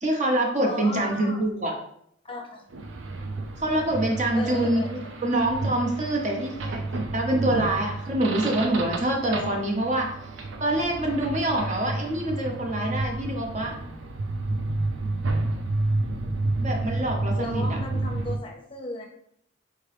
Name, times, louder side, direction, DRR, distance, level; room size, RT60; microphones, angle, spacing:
voice 1, 0.0-1.7 3.6-10.1 10.6-13.7 16.6-17.8, right 1 dB, 40° right, 0 dB, 0.8 m, -25 dB
voice 2, 0.7-1.4 2.2-2.7 4.3-5.1 17.4-19.1, left 2 dB, 30° left, 1 dB, 0.6 m, -35 dB
sound 1, 2.7-18.4, right 2 dB, 80° right, 0.5 m, -30 dB
4.6 x 2.9 x 3.3 m, 0.70 s
head